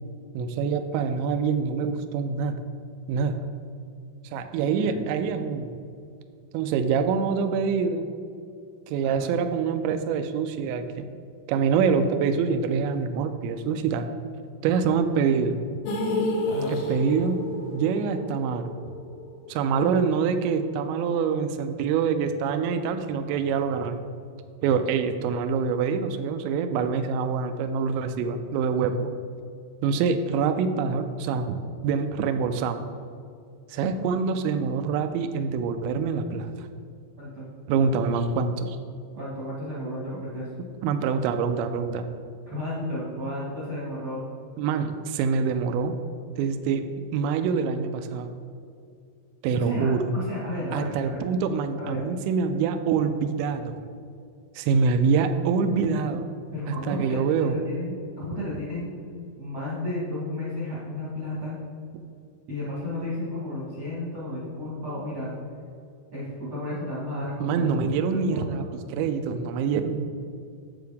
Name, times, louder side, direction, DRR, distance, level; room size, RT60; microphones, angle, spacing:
voice 1, 0.3-2.6 3.1-3.5 4.3-5.7 6.5-8.1 8.9-11.1 11.5-14.1 14.6-15.6 16.7-17.4 17.7-18.7 19.5-24.0 24.6-29.2 29.8-31.6 31.8-32.9 33.7-36.5 37.7-38.8 40.8-42.1 44.6-45.9 46.4-46.9 47.1-48.3 49.4-50.1 50.7-53.8 54.6-56.3 56.7-57.6 67.4-68.6 68.9-70.1, right 5 dB, 85° right, 8 dB, 2.6 m, -25 dB
voice 2, 4.6-5.3 9.0-9.3 16.4-16.8 37.2-37.5 39.1-40.5 42.5-44.3 49.5-51.1 51.8-52.0 56.5-57.2 57.5-58.9 59.4-61.5 62.5-65.3 66.1-67.7 68.1-68.7, left 1 dB, 60° right, -8 dB, 1.7 m, -33 dB
sound 1, 15.9-20.0 20.2-20.3 20.7-20.8, left 1 dB, 75° left, 3.3 m, -30 dB
9.4 x 7.8 x 3.5 m, 2.4 s
omnidirectional pair, 5.7 m